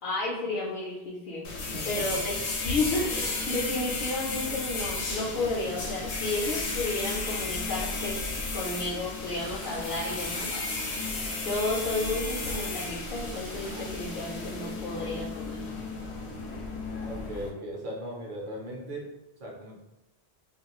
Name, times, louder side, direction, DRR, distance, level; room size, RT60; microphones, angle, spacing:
voice 1, 0.0-1.5 1.9-2.3 2.6-8.2 8.5-10.5 11.4-15.8, left 2 dB, 60° left, -5 dB, 0.7 m, -32 dB
sound 1, 1.4-17.5, left 3 dB, 85° left, 0.9 m, -34 dB
voice 2, 1.7-2.2 17.0-19.1 19.4-19.8, right 1 dB, 55° right, -2 dB, 0.8 m, -38 dB
Frying (food), 9.4-14.5, right 1 dB, 25° right, 0.5 m, -47 dB
2.4 x 2.2 x 2.9 m, 0.99 s
omnidirectional pair, 1.1 m